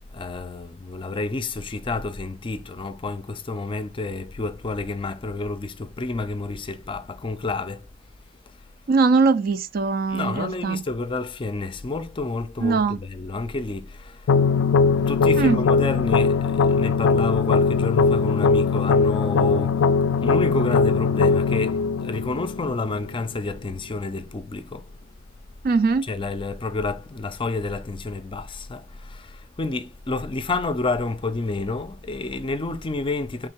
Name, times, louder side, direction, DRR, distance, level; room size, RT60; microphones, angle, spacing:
voice 1, 0.1-7.9 10.1-14.4 15.0-24.9 26.0-33.5, left 3 dB, 25° left, 0.4 m, -29 dB
voice 2, 8.9-10.8 12.6-13.0 15.4-15.6 25.6-26.1, right 4 dB, 50° right, 0.4 m, -21 dB
sound 1, 14.3-23.3, left 4 dB, 90° left, 0.3 m, -20 dB
3.7 x 2.7 x 4.3 m
head